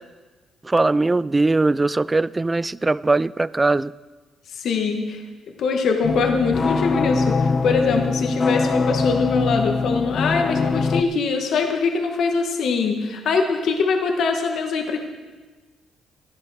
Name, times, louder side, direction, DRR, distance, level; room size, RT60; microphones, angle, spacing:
voice 1, 0.6-3.9, right 3 dB, 20° right, 0.3 m, -20 dB
voice 2, 4.5-5.2 5.6-15.0, left 4 dB, 70° left, 1.6 m, -23 dB
sound 1, 6.0-11.0, left 4 dB, 35° left, 0.7 m, -22 dB
14.0 x 10.5 x 6.3 m
cardioid pair, 90°, 0 cm